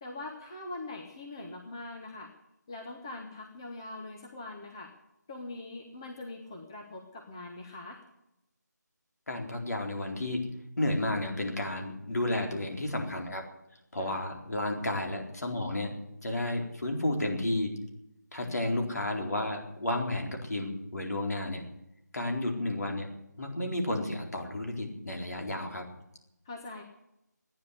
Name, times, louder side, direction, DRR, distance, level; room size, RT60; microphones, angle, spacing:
voice 1, 0.0-2.3 2.7-4.9 5.3-8.0 14.0-14.2 18.4-18.9 26.4-26.8, left 2 dB, 15° left, 1 dB, 1.0 m, -42 dB
voice 2, 9.3-10.4 10.8-13.4 13.9-15.9 16.2-17.7 18.3-21.6 22.1-23.1 23.4-25.8, left 1 dB, 60° left, 2 dB, 4.2 m, -32 dB
14.0 x 10.0 x 9.7 m, 0.85 s
figure-of-eight pair, 170°, 10 cm